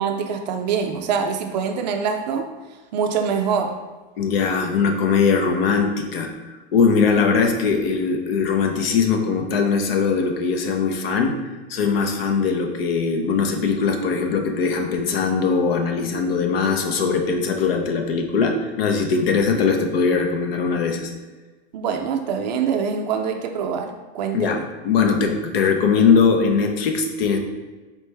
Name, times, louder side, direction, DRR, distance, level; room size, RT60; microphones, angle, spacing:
voice 1, 0.0-2.5 2.9-3.7 21.7-24.6, right 6 dB, 45° right, 5 dB, 0.4 m, -24 dB
voice 2, 4.2-11.4 11.7-21.1 24.3-24.6 24.8-27.4, left 5 dB, 65° left, 3 dB, 0.8 m, -20 dB
4.4 x 3.1 x 3.4 m, 1.2 s
supercardioid pair, 165°, 32 cm